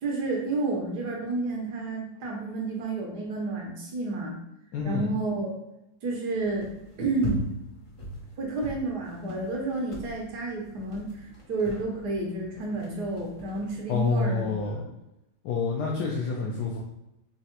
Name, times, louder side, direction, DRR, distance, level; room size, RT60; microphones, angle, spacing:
voice 1, 0.0-4.4 4.8-5.5 6.0-6.7 7.0-7.4 8.4-14.5, right 3 dB, 80° right, 0 dB, 1.5 m, -30 dB
voice 2, 4.7-5.1 13.9-14.8 15.4-16.8, left 4 dB, 85° left, -3 dB, 1.2 m, -27 dB
sound 1, 6.3-14.7, left 1 dB, 40° left, 0.4 m, -40 dB
5.5 x 2.1 x 2.9 m, 0.89 s
omnidirectional pair, 1.7 m